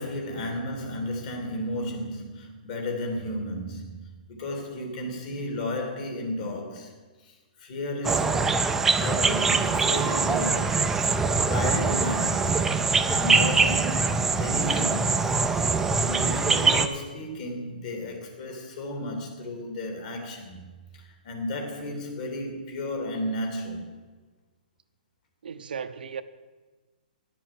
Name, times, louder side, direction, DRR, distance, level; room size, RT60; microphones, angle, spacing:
voice 1, 0.0-4.0 4.3-7.0 7.2-8.4 8.9-11.2 11.5-12.6 13.0-15.4 15.9-20.6 20.9-23.9, left 1 dB, 50° left, 2.8 m, -33 dB
sound 1, 8.0-16.9, right 4 dB, 5° right, 0.4 m, -23 dB
voice 2, 25.4-26.2, right 6 dB, 80° right, 0.8 m, -35 dB
11.0 x 7.4 x 7.6 m
hypercardioid pair, 150°, 5 cm